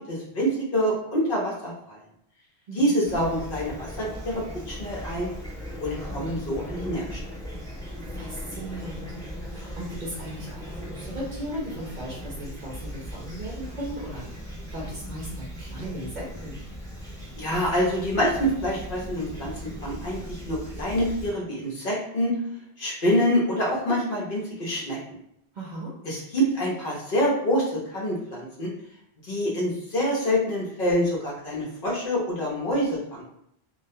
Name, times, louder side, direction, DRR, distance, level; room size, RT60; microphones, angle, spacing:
voice 1, 0.1-2.0 2.7-5.3 5.8-7.2 17.4-19.5 19.8-22.3 22.8-25.0 26.0-28.7 29.2-33.2, equal, 60° left, -3 dB, 0.9 m, -26 dB
voice 2, 2.7-3.0 8.1-9.1 9.5-16.6 25.5-25.9, right 1 dB, 55° right, -3 dB, 0.6 m, -37 dB
Fowl / Chirp tweet, 3.0-21.3, equal, 5° left, 0.5 m, -38 dB
2.3 x 2.1 x 2.7 m, 0.75 s
omnidirectional pair, 1.1 m